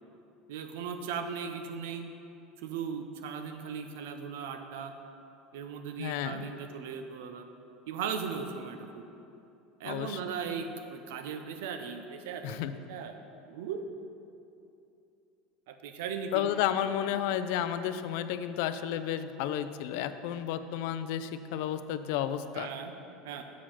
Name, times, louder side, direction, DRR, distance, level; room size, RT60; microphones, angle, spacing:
voice 1, 0.5-2.0 2.6-4.9 5.5-7.5 7.9-9.1 9.8-13.2 13.5-13.9 15.7-16.8 17.0-17.3 17.8-17.9 22.5-22.9 23.2-23.4, right 6 dB, 85° right, 7 dB, 0.6 m, -38 dB
voice 2, 6.0-6.5 9.8-10.2 12.4-12.7 16.3-22.7, left 10 dB, 70° left, 11 dB, 0.4 m, -32 dB
7.2 x 5.0 x 5.7 m, 2.7 s
cardioid pair, 150°, 0 cm